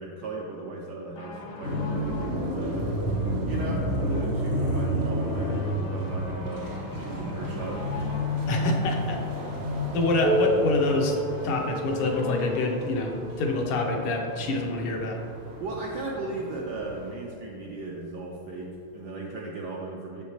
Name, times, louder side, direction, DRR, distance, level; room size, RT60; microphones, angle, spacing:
voice 1, 0.0-2.9 3.5-7.9 15.5-20.2, right 2 dB, 75° right, -2 dB, 0.9 m, -36 dB
sound 1, 1.2-14.7 15.5-15.6, left 2 dB, 70° left, 1.1 m, -43 dB
sound 2, 1.6-17.1, equal, 55° right, 0.7 m, -31 dB
voice 2, 8.5-9.2 9.9-11.2 11.4-15.2, left 2 dB, 85° left, 2 dB, 1.7 m, -26 dB
Piano, 10.2-15.5 16.4-16.5 17.0-17.1 17.9-18.0 19.0-19.1, right 1 dB, 50° left, 0.7 m, -33 dB
6.5 x 6.3 x 2.8 m, 2.6 s
omnidirectional pair, 2.4 m